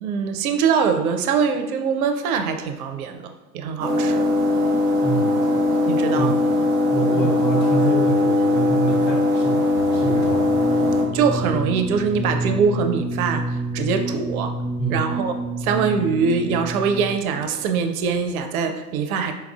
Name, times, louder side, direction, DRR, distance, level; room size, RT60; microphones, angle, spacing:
voice 1, 0.0-4.3 5.9-6.4 7.1-7.3 11.1-14.5 14.9-15.3 15.6-19.3, right 6 dB, 60° right, 7 dB, 0.5 m, -23 dB
sound 1, 3.8-11.0, left 2 dB, 25° right, 0.8 m, -20 dB
voice 2, 5.0-5.6 6.1-6.4 6.9-9.7 9.9-10.4 14.8-15.0, right 3 dB, 85° left, -2 dB, 0.9 m, -26 dB
sound 2, 9.7-17.4, right 2 dB, ahead, 0.4 m, -29 dB
4.4 x 2.3 x 2.3 m, 1.0 s
figure-of-eight pair, 85°, 49 cm